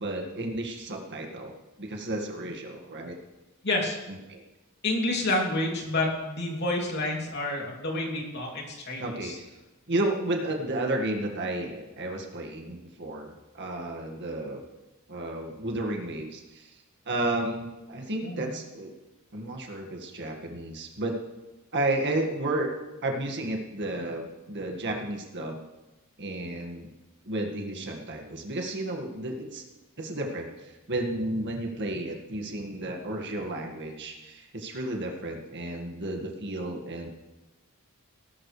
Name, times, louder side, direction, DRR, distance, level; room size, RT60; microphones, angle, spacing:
voice 1, 0.0-1.5 1.8-3.2 4.1-4.4 9.0-9.5 9.9-14.6 15.1-16.7 17.1-18.9 19.3-21.2 21.7-22.8 23.0-25.6 26.2-26.9 27.3-29.6 30.0-37.1, right 1 dB, 55° right, 2 dB, 1.9 m, -32 dB
voice 2, 3.6-4.0 4.8-9.4 18.2-18.5, left 2 dB, 50° left, -1 dB, 3.0 m, -29 dB
18.5 x 12.0 x 3.3 m, 1.0 s
head